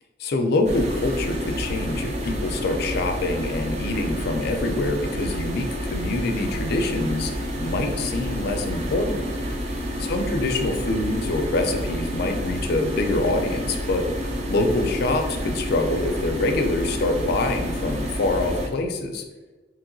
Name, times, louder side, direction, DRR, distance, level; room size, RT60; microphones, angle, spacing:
voice 1, 0.2-7.3 7.6-9.2 10.0-14.1 14.5-19.2, left 2 dB, 55° left, 5 dB, 0.4 m, -25 dB
sound 1, 0.6-18.7, equal, 35° right, 0.4 m, -29 dB
2.9 x 2.7 x 2.6 m, 1.2 s
head